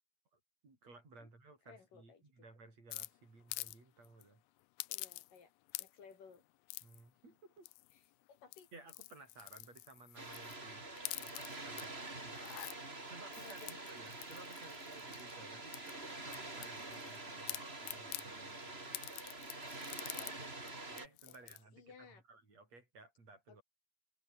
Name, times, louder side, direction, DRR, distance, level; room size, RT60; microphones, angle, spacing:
voice 1, 0.3-4.4 6.8-7.7 8.7-11.9 12.2-19.0 20.9-23.6, right 3 dB, 50° right, 9.1 m, -58 dB
voice 2, 1.7-2.4 4.9-5.5 5.8-6.4 7.9-8.0 8.3-8.7 13.4-14.0 20.1-20.9 21.3-21.4 21.7-22.2 23.5-23.6, left 6 dB, 70° left, 5.6 m, -58 dB
sound 1, 2.9-3.8 4.0-4.2 4.8-5.4 5.7-6.1 6.7-7.0 7.6-8.0 8.4-10.6 11.0-11.8 12.3-12.8 13.3-15.3 15.7-17.2 17.5-18.3 18.9-20.4 20.7-20.8 21.0-21.6, left 21 dB, 90° left, 2.4 m, -46 dB
Water, 10.2-21.1, right 2 dB, 15° right, 3.8 m, -47 dB
omnidirectional pair, 4.0 m